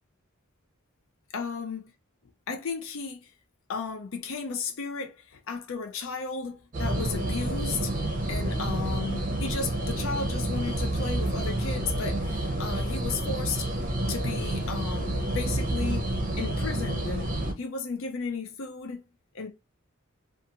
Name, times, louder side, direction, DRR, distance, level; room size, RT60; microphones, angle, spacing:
voice 1, 1.3-1.8 2.5-3.3 3.7-7.9 8.3-13.7 14.1-16.1 16.4-17.3 17.6-19.0 19.3-19.5, left 5 dB, 70° left, 0.4 m, -34 dB
sound 1, 6.7-17.5, right 1 dB, 40° right, 0.6 m, -29 dB
2.5 x 2.4 x 2.7 m
head